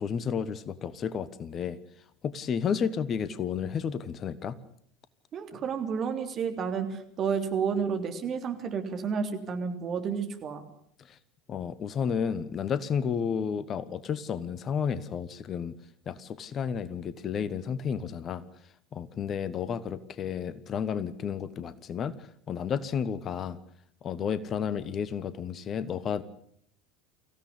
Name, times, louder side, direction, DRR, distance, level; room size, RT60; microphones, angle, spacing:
voice 1, 0.0-1.8 2.2-4.6 11.0-11.2 11.5-15.8 16.1-18.4 18.9-23.6 24.0-26.2, left 7 dB, 35° left, 16 dB, 1.3 m, -32 dB
voice 2, 5.3-10.6, right 6 dB, 35° right, 6 dB, 3.5 m, -31 dB
25.0 x 16.0 x 9.8 m, 0.67 s
figure-of-eight pair, 70°, 0 cm